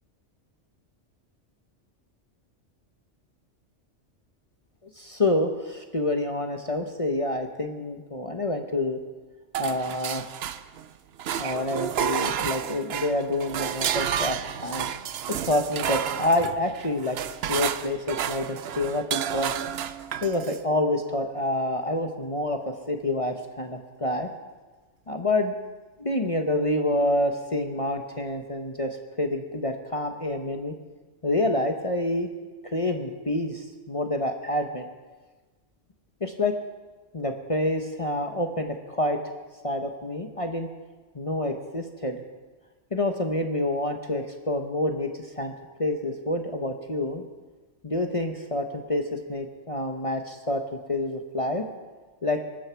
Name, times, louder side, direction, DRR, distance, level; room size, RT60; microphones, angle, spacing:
voice 1, 5.0-9.0 9.6-10.4 11.4-14.9 15.3-17.2 17.5-19.5 20.2-24.3 25.1-25.5 26.0-30.7 31.2-32.3 32.7-34.9 36.2-36.5 37.1-39.2 39.6-40.7 41.1-42.2 42.9-45.5 45.8-47.3 47.8-49.0 49.3-51.6 52.2-52.4, left 1 dB, 30° left, 4 dB, 1.0 m, -27 dB
sound 1, 9.5-10.9 11.2-20.6, right 9 dB, 60° right, 0.8 m, -31 dB
23.0 x 13.0 x 4.6 m, 1.3 s
omnidirectional pair, 1.3 m